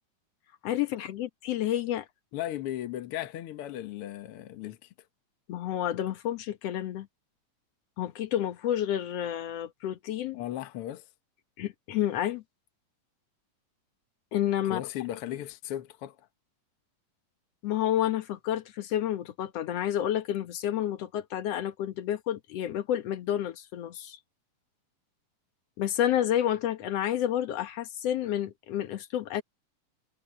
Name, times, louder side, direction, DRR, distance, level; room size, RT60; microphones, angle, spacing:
voice 1, 0.6-2.1 5.5-7.1 8.0-10.4 11.6-12.4 14.3-14.8 17.6-24.2 25.8-29.4, left 11 dB, 60° left, 1.8 m, -30 dB
voice 2, 2.3-4.9 10.3-11.1 14.6-16.3, left 12 dB, 80° left, 1.2 m, -36 dB
omnidirectional pair, 4.0 m